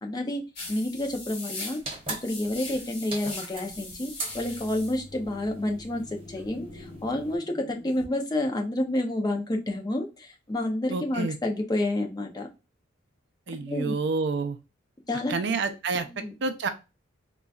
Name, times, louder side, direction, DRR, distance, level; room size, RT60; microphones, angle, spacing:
voice 1, 0.0-0.4 0.7-1.8 2.1-12.5 13.5-14.0 15.1-15.4 16.1-16.3, left 1 dB, 20° left, 3 dB, 0.6 m, -29 dB
sound 1, 0.6-8.1, left 2 dB, 60° left, 1.1 m, -42 dB
sound 2, 1.8-7.4, right 2 dB, 30° right, 1.0 m, -40 dB
voice 2, 10.9-11.4 13.5-14.6 15.3-16.1 16.4-16.7, right 4 dB, 60° right, 9 dB, 0.5 m, -28 dB
3.9 x 2.3 x 2.3 m, 0.27 s
head